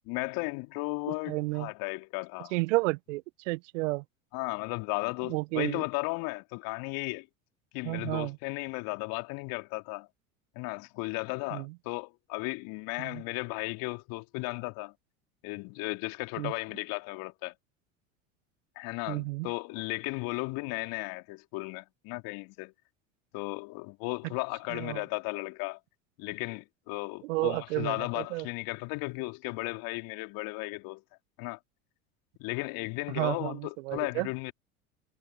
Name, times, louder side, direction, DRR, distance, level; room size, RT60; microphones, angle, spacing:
voice 1, 0.1-2.5 4.3-7.3 7.7-10.1 10.6-14.9 15.4-17.5 18.8-22.7 23.3-25.8 26.2-31.0 31.4-31.6 32.4-34.5, left 26 dB, 55° left, 3.6 m, -35 dB
voice 2, 1.3-1.7 2.5-4.0 5.3-5.8 7.8-8.4 11.5-11.6 16.4-16.5 19.1-19.5 24.7-25.0 27.3-28.5 33.2-34.3, right 23 dB, 60° right, 1.1 m, -31 dB
hypercardioid pair, 80°, 41 cm